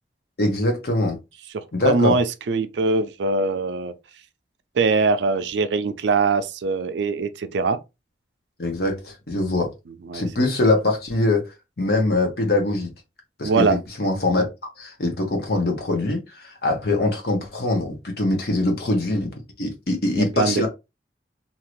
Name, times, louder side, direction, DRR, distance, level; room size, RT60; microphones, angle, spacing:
voice 1, 0.4-1.2 1.7-2.1 8.6-9.7 10.1-12.9 13.4-14.4 14.8-19.3 19.6-20.7, left 2 dB, 60° left, 1.0 m, -23 dB
voice 2, 1.5-3.9 4.8-7.8 10.1-10.2 13.4-13.8 20.1-20.7, right 4 dB, 80° right, 0.4 m, -22 dB
2.8 x 2.5 x 3.0 m
head